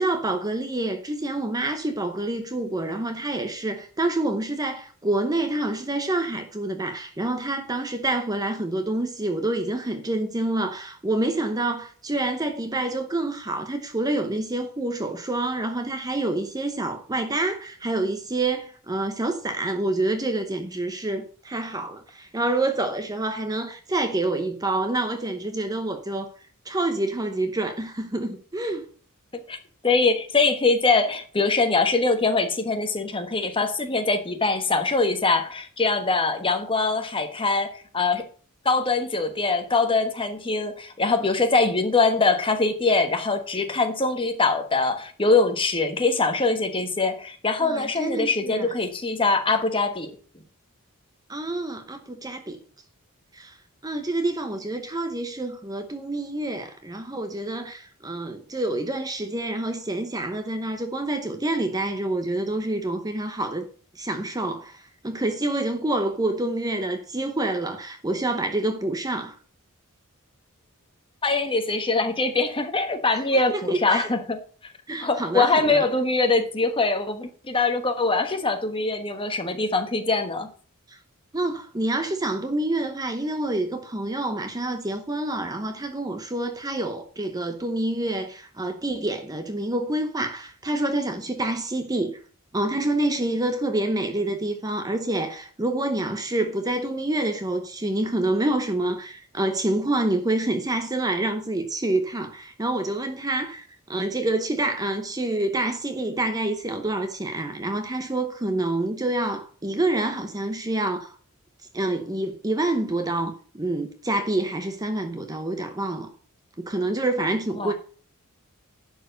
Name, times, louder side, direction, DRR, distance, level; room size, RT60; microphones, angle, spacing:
voice 1, 0.0-26.3 26.6-28.9 47.6-48.7 51.3-52.6 53.3-53.6 53.8-63.7 63.9-69.3 73.1-74.1 74.9-75.9 80.9-81.0 81.3-92.2 92.5-111.1 111.7-116.1 116.6-117.7, right 2 dB, 15° right, 0.8 m, -27 dB
voice 2, 29.8-38.2 38.6-50.1 71.2-74.4 75.0-80.5 117.6-117.7, left 3 dB, 25° left, 1.2 m, -23 dB
11.0 x 4.7 x 6.4 m
head